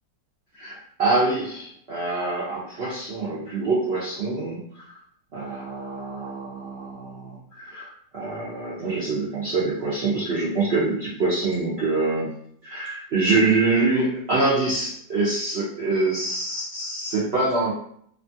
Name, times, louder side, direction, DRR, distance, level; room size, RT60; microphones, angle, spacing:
voice 1, 0.5-4.6 5.3-12.3 12.6-17.7, right 3 dB, 65° right, -8 dB, 0.6 m, -25 dB
2.9 x 2.3 x 2.6 m, 0.66 s
omnidirectional pair, 2.0 m